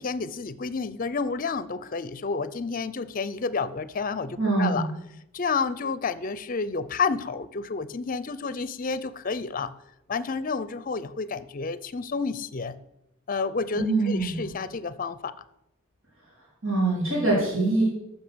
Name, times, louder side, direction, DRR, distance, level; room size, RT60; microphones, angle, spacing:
voice 1, 0.0-4.9 5.3-9.7 10.1-12.8 13.3-15.3, left 4 dB, 40° left, 15 dB, 0.5 m, -30 dB
voice 2, 4.4-4.9 13.8-14.4 16.6-17.8, right 2 dB, 85° right, -6 dB, 3.9 m, -24 dB
14.0 x 5.5 x 6.2 m, 0.86 s
head